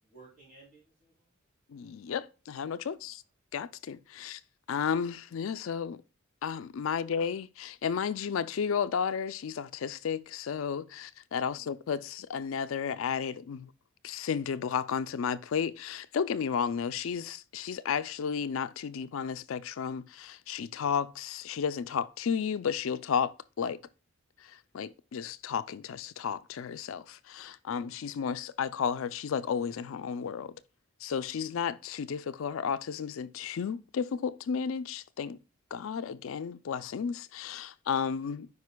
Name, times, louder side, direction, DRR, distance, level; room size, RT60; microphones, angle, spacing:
voice 1, 0.0-1.4 2.9-3.1 4.1-4.4 7.0-7.1 11.4-11.7, right 3 dB, 40° right, 3.5 m, -58 dB
voice 2, 1.7-3.2 3.5-4.4 4.7-6.0 6.4-13.7 14.0-23.8 24.4-30.5 31.0-35.4 35.7-38.5, left 7 dB, 70° left, 0.4 m, -33 dB
9.4 x 5.0 x 2.2 m
head